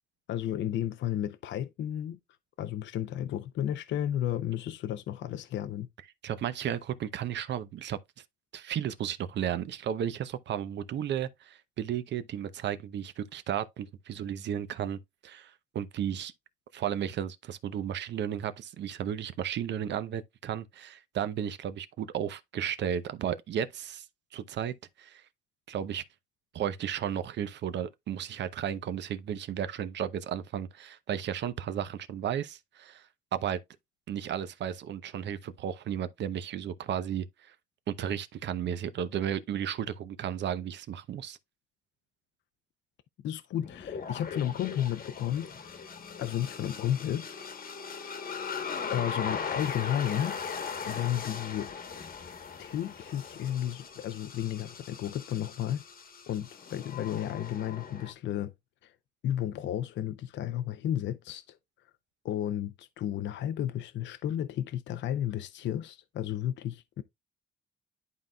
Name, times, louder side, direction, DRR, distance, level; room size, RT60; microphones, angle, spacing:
voice 1, 0.3-2.2 2.6-5.9 43.2-45.8 46.2-47.3 48.9-50.4 50.9-51.7 52.6-55.8 56.3-58.5 58.8-58.9 59.2-61.6 62.2-67.0, left 11 dB, 65° left, 0.5 m, -33 dB
voice 2, 6.2-8.0 8.5-16.3 16.7-24.0 24.3-25.2 25.7-26.0 26.5-33.0 33.3-33.6 34.1-37.5 37.9-41.4, right 9 dB, 65° right, 0.7 m, -34 dB
sound 1, 43.6-58.1, left 6 dB, 45° left, 1.1 m, -39 dB
11.0 x 3.8 x 2.2 m
cardioid pair, 90°, 20 cm